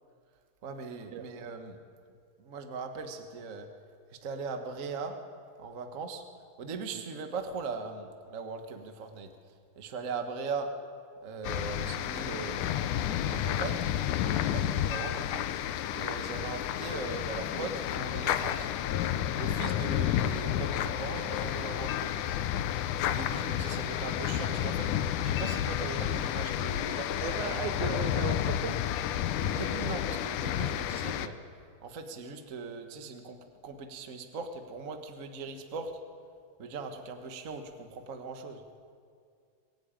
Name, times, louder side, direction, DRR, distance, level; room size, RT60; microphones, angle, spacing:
voice 1, 0.6-1.8 2.4-3.7 4.2-5.2 5.6-6.2 6.6-9.3 9.7-10.7 11.2-13.0 13.3-13.8 14.2-15.5 15.9-18.8 19.3-22.1 23.0-24.9 25.2-27.7 29.4-31.3 31.8-33.4 33.6-35.9 36.6-38.6, right 4 dB, 60° right, 5 dB, 0.8 m, -39 dB
sound 1, 11.4-31.3, left 10 dB, 75° left, 2.1 m, -31 dB
voice 2, 27.2-28.8, right 10 dB, 75° right, 11 dB, 1.9 m, -37 dB
23.5 x 15.5 x 9.0 m, 2.2 s
omnidirectional pair, 3.9 m